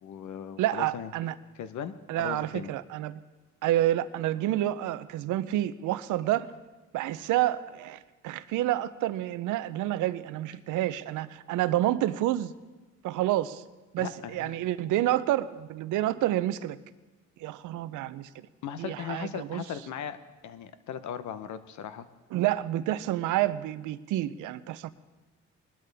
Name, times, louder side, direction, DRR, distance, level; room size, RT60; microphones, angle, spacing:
voice 1, 0.0-1.1 1.6-2.7 14.0-14.5 14.8-14.9 18.6-20.2 20.4-22.1, left 8 dB, 70° left, 12 dB, 0.9 m, -38 dB
voice 2, 0.6-1.4 2.1-3.2 3.6-6.5 6.9-12.5 13.0-13.6 13.9-16.8 17.4-18.5 18.8-19.6 22.3-24.9, right 14 dB, 90° right, 15 dB, 0.6 m, -29 dB
19.5 x 12.0 x 3.4 m, 1.2 s
cardioid pair, 90°, 30 cm